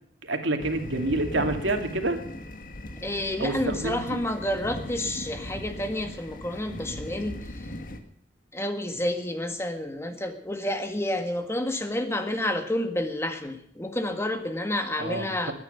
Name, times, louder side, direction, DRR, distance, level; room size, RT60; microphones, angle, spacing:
voice 1, 0.2-2.2 3.4-4.2 15.0-15.5, right 2 dB, 90° right, 5 dB, 2.4 m, -28 dB
sound 1, 0.6-8.0, left 1 dB, 50° left, 1.8 m, -38 dB
voice 2, 3.0-7.7 8.5-15.5, left 1 dB, 15° left, 6 dB, 1.7 m, -30 dB
21.5 x 9.8 x 6.8 m, 0.69 s
head